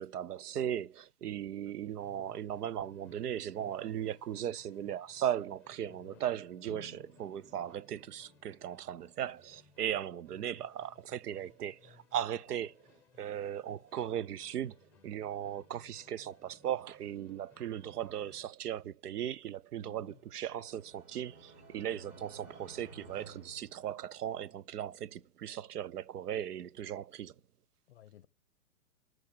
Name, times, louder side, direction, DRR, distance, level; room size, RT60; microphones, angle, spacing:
voice 1, 0.0-12.7 13.2-14.7 15.0-27.3, right 10 dB, 90° right, 0.6 m, -37 dB
Musical instrument, 2.0-18.6, left 5 dB, 5° left, 0.8 m, -64 dB
voice 2, 5.8-6.2 19.8-20.2 27.9-28.3, left 11 dB, 45° left, 0.6 m, -57 dB
Drum, 6.7-8.7, equal, 50° right, 3.7 m, -56 dB
sound 1, 20.0-24.4, right 2 dB, 25° right, 3.8 m, -55 dB
8.6 x 6.2 x 7.5 m
hypercardioid pair, 145°, 45 cm